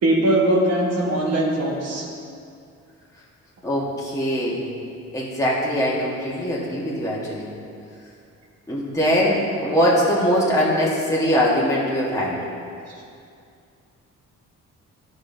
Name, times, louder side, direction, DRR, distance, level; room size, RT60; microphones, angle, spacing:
voice 1, 0.0-2.0, right 1 dB, 55° right, -2 dB, 1.4 m, -20 dB
voice 2, 3.6-4.6 5.1-7.5 8.7-12.4, equal, 10° left, -6 dB, 1.4 m, -22 dB
11.0 x 5.3 x 2.7 m, 2.4 s
cardioid pair, 90°, 30 cm